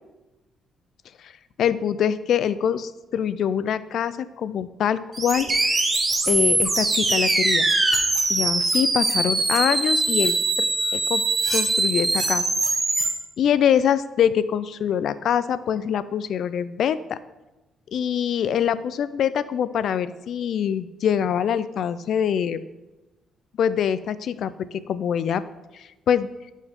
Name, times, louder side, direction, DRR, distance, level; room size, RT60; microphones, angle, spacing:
voice 1, 1.6-5.8 6.3-7.7 8.3-10.7 10.9-11.2 11.5-12.4 13.4-17.2 17.9-22.6 23.6-25.4 25.7-26.3, left 8 dB, 70° left, 15 dB, 0.4 m, -24 dB
sound 1, 5.1-13.1, right 2 dB, 25° right, 1.2 m, -22 dB
11.0 x 4.6 x 3.6 m, 1.0 s
cardioid pair, 90°, 0 cm